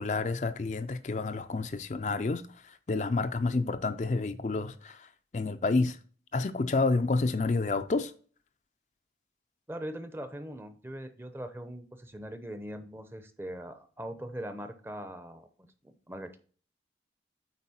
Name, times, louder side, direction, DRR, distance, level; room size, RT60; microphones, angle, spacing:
voice 1, 0.0-2.4 2.9-5.0 5.3-6.0 6.3-8.1, left 3 dB, 40° left, 0.4 m, -29 dB
voice 2, 9.7-16.4, equal, 15° right, 0.7 m, -41 dB
8.3 x 4.8 x 4.3 m
head